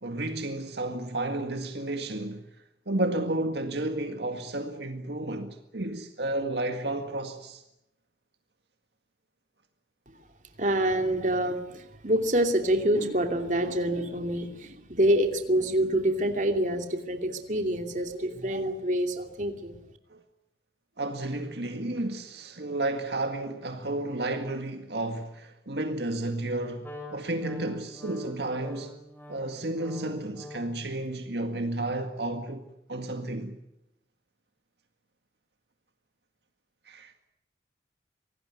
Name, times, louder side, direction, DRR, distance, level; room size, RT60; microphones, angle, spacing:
voice 1, 0.0-2.4 2.9-7.6 20.1-20.2 21.0-28.9 29.3-33.5 36.9-37.1, right 2 dB, 65° right, 2.0 m, -32 dB
voice 2, 10.6-19.8, right 1 dB, 45° right, 2.7 m, -26 dB
Wind instrument woodwind instrument, 26.8-30.9, left 1 dB, 10° left, 5.8 m, -45 dB
25.0 x 18.5 x 9.5 m
head